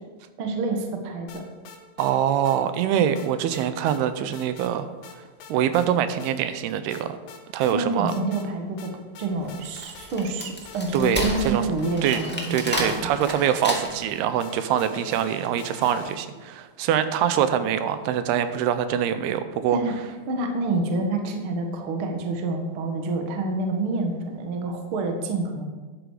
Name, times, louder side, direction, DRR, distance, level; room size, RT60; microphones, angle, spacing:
voice 1, 0.4-1.4 7.7-8.9 9.2-13.1 19.7-19.9 20.3-25.7, right 2 dB, 60° right, 3 dB, 1.4 m, -27 dB
sound 1, 1.3-2.1 2.5-2.6 3.2-4.0 4.3-4.7 5.0-5.9 6.2-6.3 6.9-7.8 8.1-8.5 8.8-10.3 10.7-16.4, left 5 dB, 90° left, 3.1 m, -46 dB
voice 2, 2.0-4.9 5.5-7.2 7.5-8.2 10.9-11.6 12.0-12.2 12.5-19.8, right 9 dB, 85° right, 11 dB, 2.7 m, -24 dB
Wood, 9.4-14.2, left 1 dB, 10° left, 0.5 m, -31 dB
12.0 x 10.0 x 4.9 m, 1.3 s
omnidirectional pair, 4.6 m